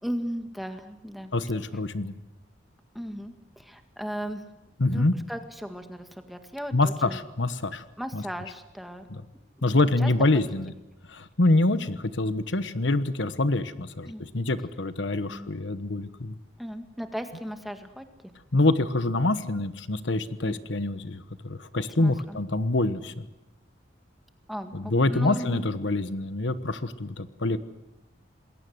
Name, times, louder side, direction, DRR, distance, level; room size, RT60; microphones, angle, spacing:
voice 1, 0.0-1.3 3.0-4.4 4.9-7.2 8.0-9.1 9.7-10.1 14.1-14.2 15.3-15.6 16.6-18.1 20.4-20.6 22.0-22.4 24.5-25.7, equal, ahead, 6 dB, 1.9 m, -36 dB
voice 2, 1.3-2.1 4.8-5.2 6.7-7.8 8.1-8.2 9.1-9.2 9.6-10.7 11.1-16.4 18.5-23.3 24.7-27.6, left 2 dB, 75° left, 13 dB, 1.2 m, -26 dB
27.5 x 21.5 x 8.0 m, 0.93 s
head